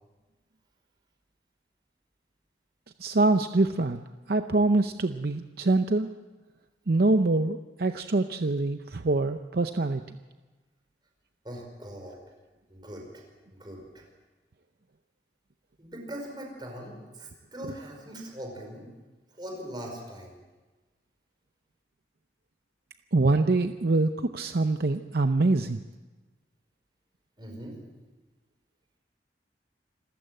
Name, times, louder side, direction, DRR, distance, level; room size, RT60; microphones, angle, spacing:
voice 1, 3.0-4.0 4.3-6.1 6.9-10.0 23.1-25.8, right 2 dB, 60° right, 8 dB, 0.7 m, -24 dB
voice 2, 11.4-12.2 12.7-13.2 13.6-14.1 15.8-18.9 19.3-20.4 27.4-27.8, equal, 25° right, 2 dB, 5.2 m, -41 dB
27.0 x 15.0 x 7.8 m, 1.2 s
head